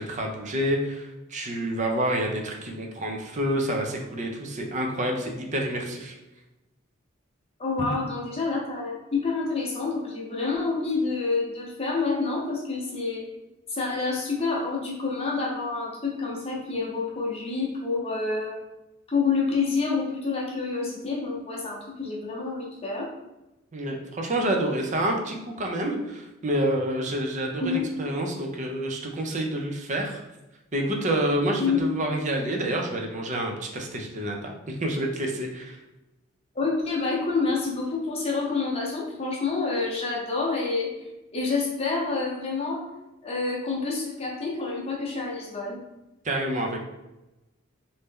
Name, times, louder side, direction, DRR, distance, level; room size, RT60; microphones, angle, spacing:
voice 1, 0.0-6.2 7.8-7.9 23.7-30.2 30.7-35.8 46.2-46.8, right 1 dB, 40° right, 2 dB, 0.6 m, -28 dB
voice 2, 7.6-13.3 13.7-18.6 19.1-23.1 27.6-27.8 31.6-31.8 36.5-40.9 41.3-42.8 43.2-45.8, left 4 dB, 30° left, -3 dB, 0.8 m, -28 dB
3.2 x 2.7 x 3.6 m, 0.98 s
head